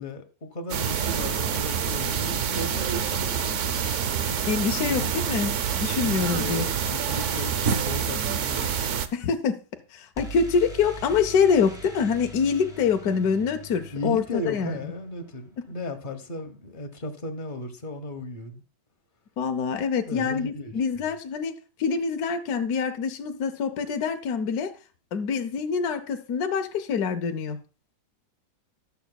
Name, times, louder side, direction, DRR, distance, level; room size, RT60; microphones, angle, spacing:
voice 1, 0.0-3.8 4.7-5.1 6.0-8.7 13.9-18.6 20.1-20.7, left 1 dB, 30° left, 1.0 m, -35 dB
sound 1, 0.7-9.1, right 7 dB, 65° right, 0.7 m, -27 dB
voice 2, 4.5-6.7 9.1-9.6 9.9-14.9 19.4-21.5 21.8-24.7 25.1-27.6, left 6 dB, 65° left, 1.1 m, -25 dB
sound 2, 10.2-15.9, right 1 dB, ahead, 2.0 m, -44 dB
19.0 x 7.0 x 2.3 m
omnidirectional pair, 2.1 m